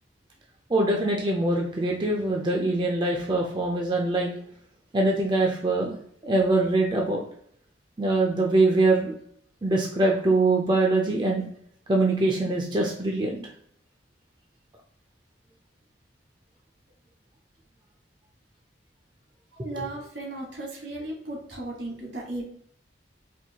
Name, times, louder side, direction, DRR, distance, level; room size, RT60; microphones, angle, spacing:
voice 1, 0.7-4.3 4.9-6.0 6.2-7.2 8.0-9.1 9.6-11.4 11.9-13.4, right 2 dB, 25° right, 0 dB, 0.4 m, -23 dB
voice 2, 19.5-22.4, right 2 dB, 70° right, 0 dB, 1.3 m, -35 dB
4.4 x 2.7 x 2.8 m, 0.64 s
head